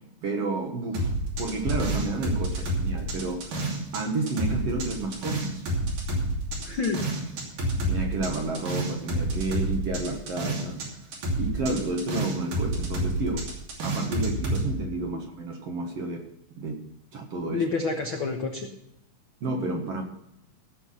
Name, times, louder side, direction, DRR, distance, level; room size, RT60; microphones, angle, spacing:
voice 1, 0.2-1.1 1.4-3.6 3.9-5.6 7.9-10.8 11.4-13.4 13.8-16.3 16.6-16.8 17.1-17.6 19.4-20.0, right 3 dB, 55° right, 3 dB, 2.1 m, -31 dB
sound 1, 0.9-4.0 4.3-10.9 11.1-14.6, right 1 dB, 80° right, 4.5 m, -28 dB
sound 2, 1.7-3.2, right 1 dB, 20° left, 1.9 m, -33 dB
voice 2, 6.6-7.0 7.7-7.8 15.1-15.2 17.5-18.7, left 4 dB, 65° left, 2 dB, 1.2 m, -28 dB
16.5 x 7.0 x 5.6 m, 0.83 s
omnidirectional pair, 3.9 m